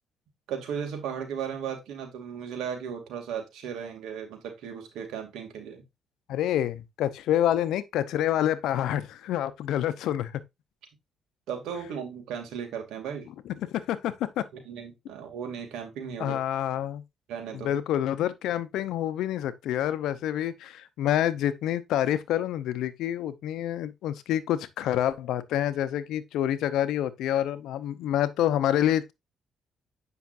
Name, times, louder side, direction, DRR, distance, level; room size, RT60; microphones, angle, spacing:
voice 1, 0.5-5.8 11.5-13.3 14.7-16.4 17.3-17.7, right 7 dB, 85° right, 2.5 m, -36 dB
voice 2, 6.3-10.4 13.5-14.4 16.2-17.0 17.5-29.1, left 11 dB, 85° left, 0.7 m, -27 dB
8.2 x 5.7 x 2.6 m
cardioid pair, 90°, 0 cm